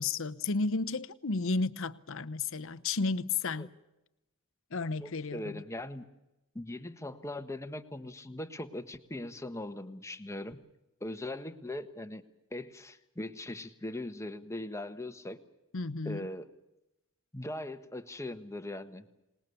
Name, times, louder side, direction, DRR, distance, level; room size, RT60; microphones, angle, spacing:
voice 1, 0.0-3.7 4.7-5.6 15.7-16.3, left 3 dB, 65° left, 0.9 m, -32 dB
voice 2, 5.0-6.0 6.5-10.6 11.0-12.2 12.5-15.4 16.0-16.5 17.3-19.0, left 1 dB, 15° left, 1.3 m, -40 dB
26.5 x 20.0 x 7.0 m
head